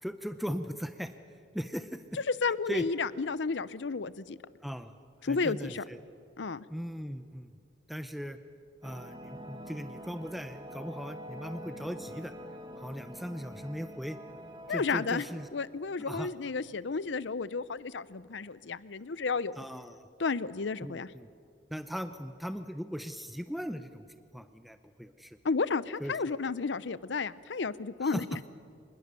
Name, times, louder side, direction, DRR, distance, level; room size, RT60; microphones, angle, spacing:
voice 1, 0.0-1.1 1.5-2.0 2.7-2.8 4.6-4.9 5.2-6.0 6.7-7.5 7.9-8.4 8.8-12.3 12.8-14.2 14.7-15.5 16.0-16.3 19.6-20.1 20.8-21.3 21.7-24.0 24.3-25.4 26.0-26.2 28.0-28.3, equal, ahead, 9 dB, 0.7 m, -38 dB
voice 2, 2.4-4.4 5.2-5.8 6.4-6.6 14.7-15.2 15.5-19.6 20.2-21.1 25.4-28.2, left 4 dB, 80° left, 17 dB, 0.7 m, -32 dB
sound 1, 8.8-15.5, equal, 25° right, 1.4 m, -46 dB
25.5 x 21.0 x 6.9 m, 2.2 s
head